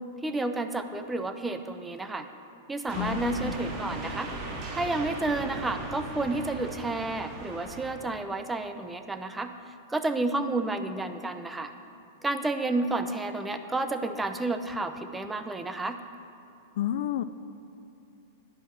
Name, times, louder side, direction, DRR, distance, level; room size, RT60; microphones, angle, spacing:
voice 1, 0.2-2.3 2.7-4.3 4.7-9.5 9.9-11.7 12.2-16.0, right 2 dB, 10° right, 8 dB, 0.7 m, -31 dB
voice 2, 2.9-3.5 16.8-17.2, left 11 dB, 60° left, 13 dB, 0.4 m, -30 dB
sound 1, 2.9-7.9, right 2 dB, 35° right, 1.9 m, -38 dB
11.0 x 10.5 x 4.2 m, 2.8 s
figure-of-eight pair, 100°, 0 cm